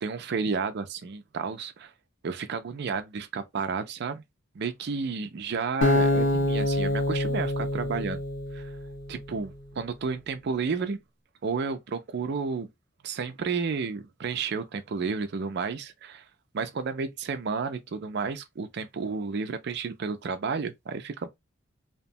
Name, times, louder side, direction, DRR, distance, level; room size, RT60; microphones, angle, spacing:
voice 1, 0.0-1.9 2.2-4.2 4.5-8.2 8.5-8.7 9.1-11.0 11.4-12.7 13.0-16.2 16.5-21.3, right 5 dB, 60° right, 0.4 m, -31 dB
Acoustic guitar, 5.8-9.0, left 1 dB, 80° left, 1.2 m, -26 dB
2.9 x 2.2 x 2.6 m
head